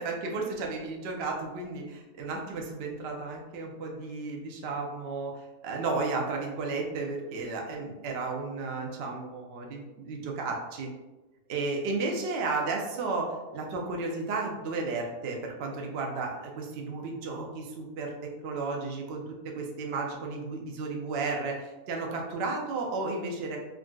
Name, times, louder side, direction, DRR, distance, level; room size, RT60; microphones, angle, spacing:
voice 1, 0.0-10.9 11.5-23.6, right 3 dB, 70° right, 0 dB, 0.6 m, -33 dB
3.7 x 2.4 x 2.2 m, 1.1 s
omnidirectional pair, 1.7 m